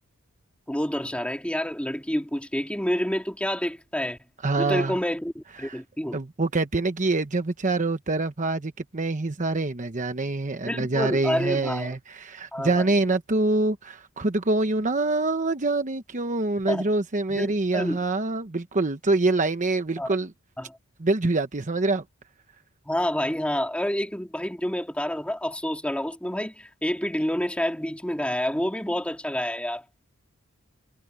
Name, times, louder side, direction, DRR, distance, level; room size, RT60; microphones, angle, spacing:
voice 1, 0.7-4.2 4.6-6.2 10.7-11.9 12.5-12.8 16.7-16.9 17.3-18.0 20.0-20.1 20.6-20.8 22.9-29.8, equal, 5° left, 2.3 m, -28 dB
voice 2, 4.4-5.0 5.6-5.8 6.1-20.3 21.0-22.0, right 2 dB, 35° right, 1.0 m, -25 dB
head